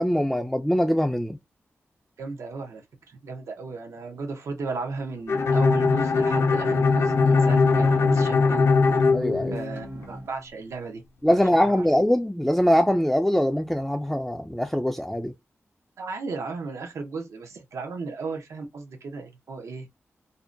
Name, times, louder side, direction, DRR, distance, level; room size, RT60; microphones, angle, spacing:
voice 1, 0.0-1.4 9.1-9.6 11.2-15.3, equal, 5° left, 0.3 m, -22 dB
voice 2, 2.2-8.6 9.5-11.0 11.3-11.8 16.0-19.9, right 4 dB, 80° right, 0.7 m, -35 dB
Bowed string instrument, 5.3-10.1, left 4 dB, 65° left, 0.5 m, -21 dB
sound 1, 5.7-10.3, right 2 dB, 60° right, 1.1 m, -35 dB
2.6 x 2.1 x 2.4 m
wide cardioid pair, 80°, 5 cm